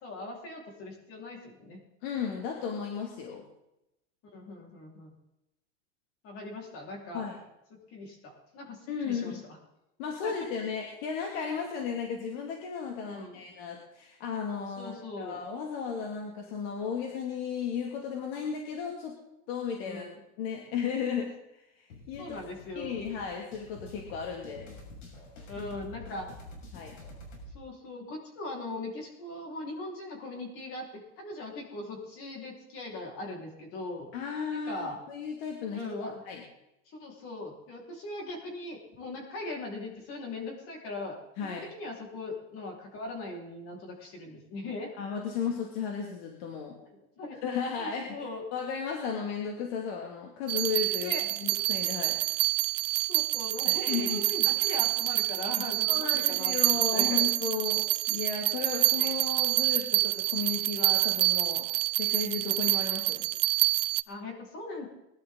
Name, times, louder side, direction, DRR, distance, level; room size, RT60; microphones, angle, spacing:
voice 1, 0.0-1.8 4.3-5.1 6.2-7.2 7.7-9.4 10.2-10.5 13.0-13.4 14.8-15.4 19.8-20.2 22.2-23.0 25.5-26.2 27.5-34.1 34.5-35.0 35.7-36.2 36.9-44.9 47.2-47.4 47.8-48.4 51.0-51.3 53.1-57.3 59.0-59.1 64.1-64.8, left 2 dB, 40° left, -1 dB, 4.8 m, -40 dB
voice 2, 2.0-3.4 7.1-7.4 8.9-9.4 10.0-19.2 19.5-20.1 20.4-22.4 22.7-24.7 25.6-25.7 26.7-27.0 34.1-35.8 36.3-36.4 41.4-41.7 45.0-46.8 47.3-51.1 51.4-52.2 53.7-54.2 55.8-61.7 61.9-63.3, left 6 dB, 55° left, 1 dB, 2.7 m, -35 dB
sound 1, 21.9-27.5, left 2 dB, 85° left, 6.3 m, -48 dB
sound 2, 50.5-64.0, right 19 dB, 80° right, 0.6 m, -27 dB
21.5 x 12.0 x 4.0 m, 0.88 s
supercardioid pair, 155°, 36 cm